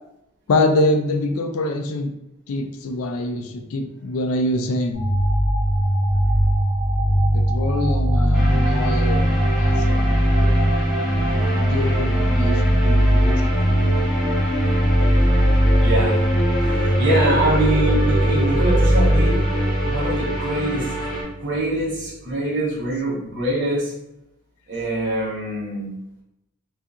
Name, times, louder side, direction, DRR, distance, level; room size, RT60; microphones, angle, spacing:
voice 1, 0.5-2.1 2.5-5.1 7.3-10.9 11.7-13.4, left 2 dB, 75° left, 5 dB, 0.4 m, -25 dB
sound 1, 4.9-21.3, equal, 25° left, 1.0 m, -19 dB
sound 2, 8.3-21.2, right 1 dB, 5° right, 0.7 m, -27 dB
voice 2, 15.8-16.2 16.6-19.4 19.8-20.9 21.4-23.9 24.7-25.9, right 1 dB, 55° right, -6 dB, 1.0 m, -24 dB
2.7 x 2.4 x 2.4 m, 0.86 s
head